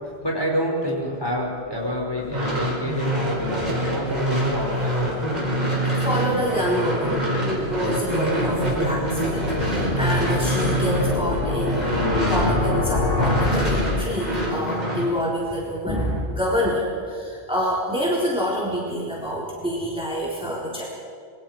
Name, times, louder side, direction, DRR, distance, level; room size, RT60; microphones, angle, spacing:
voice 1, 0.2-5.0, equal, 20° left, -3 dB, 5.6 m, -27 dB
sound 1, 1.7-14.6, left 3 dB, 65° left, 1.9 m, -29 dB
sound 2, 2.2-12.8 13.2-15.1, right 1 dB, 40° right, 5.4 m, -25 dB
voice 2, 5.8-20.8, equal, 5° right, -5 dB, 3.8 m, -27 dB
27.5 x 24.0 x 4.7 m, 2.1 s
omnidirectional pair, 1.1 m